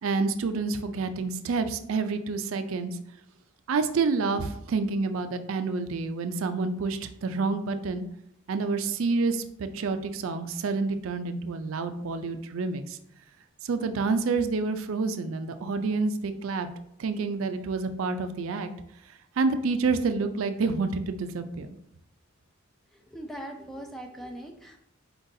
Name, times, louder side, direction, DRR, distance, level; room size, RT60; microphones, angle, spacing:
voice 1, 0.0-3.0 3.7-8.0 8.5-13.0 13.6-16.7 17.0-18.7 19.4-21.8, right 4 dB, 75° right, 9 dB, 0.4 m, -28 dB
voice 2, 22.9-24.8, right 1 dB, ahead, 2 dB, 0.3 m, -40 dB
4.5 x 3.9 x 2.6 m, 0.76 s
head